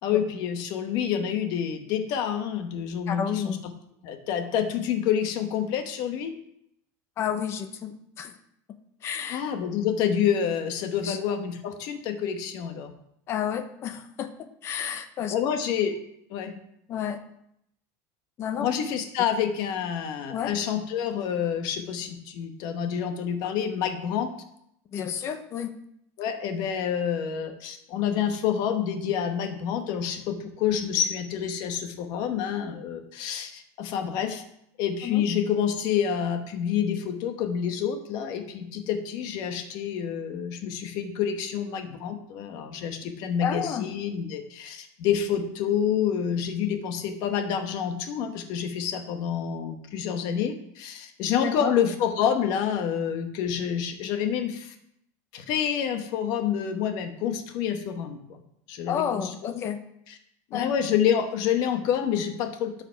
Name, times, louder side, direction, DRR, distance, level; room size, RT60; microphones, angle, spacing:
voice 1, 0.0-3.6 4.0-6.3 9.3-12.9 15.3-15.9 16.3-16.5 18.6-24.3 26.2-34.4 34.8-54.7 55.3-58.4 58.7-59.6 60.1-60.2 60.5-62.8, left 8 dB, 45° left, 7 dB, 1.1 m, -28 dB
voice 2, 3.1-3.6 7.2-8.3 9.0-9.4 11.0-11.2 13.3-14.3 14.6-15.3 16.9-17.2 18.4-18.7 20.3-20.5 24.9-25.8 35.0-35.2 43.4-43.9 51.4-51.7 58.9-59.8 60.5-60.7, left 8 dB, 30° left, 9 dB, 0.8 m, -30 dB
12.5 x 5.0 x 4.5 m, 0.77 s
cardioid pair, 165°, 9 cm